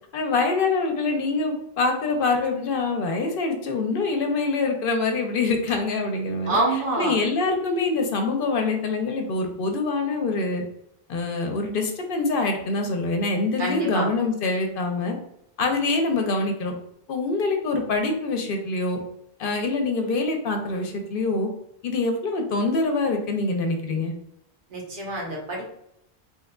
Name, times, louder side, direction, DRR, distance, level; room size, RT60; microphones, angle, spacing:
voice 1, 0.1-6.6 7.0-10.6 11.1-15.2 15.6-16.7 17.1-19.0 19.4-21.5 21.8-24.1, left 3 dB, 65° left, 4 dB, 0.7 m, -25 dB
voice 2, 6.5-7.2 13.6-14.1 24.7-25.6, right 2 dB, 55° right, -2 dB, 1.2 m, -26 dB
3.5 x 3.1 x 2.2 m, 0.76 s
omnidirectional pair, 1.1 m